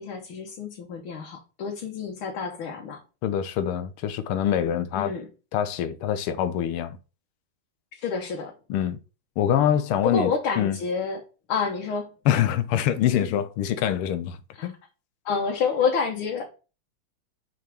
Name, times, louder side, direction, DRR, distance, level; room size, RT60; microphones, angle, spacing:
voice 1, 0.0-3.0 4.9-5.3 7.9-8.5 10.0-11.2 11.5-12.1 14.5-14.7 15.3-16.5, left 5 dB, 75° left, 2.0 m, -28 dB
voice 2, 3.2-5.1 5.5-7.0 8.7-9.0 9.4-10.3 10.6-10.8 12.3-14.4 14.6-14.8, left 10 dB, 90° left, 1.6 m, -24 dB
6.0 x 4.7 x 6.1 m
omnidirectional pair, 2.3 m